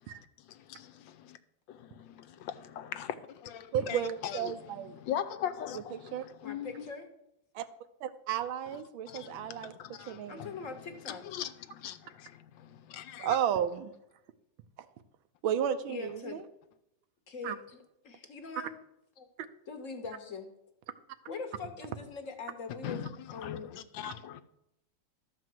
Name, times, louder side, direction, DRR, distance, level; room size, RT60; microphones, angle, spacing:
voice 1, 0.5-1.4 1.7-6.8 9.1-10.7 11.0-13.4 22.8-24.4, left 10 dB, 80° left, 1.3 m, -41 dB
voice 2, 3.7-4.9 5.9-6.3 7.5-7.7 8.0-9.7 10.1-10.5 13.2-13.9 15.4-16.4 17.4-17.6, right 9 dB, 90° right, 1.5 m, -33 dB
voice 3, 6.4-7.1 10.3-11.2 15.9-16.4 17.3-18.7 19.7-20.5 21.3-23.0 23.3-23.7, left 4 dB, 50° left, 1.2 m, -42 dB
12.5 x 4.6 x 7.6 m
omnidirectional pair, 2.1 m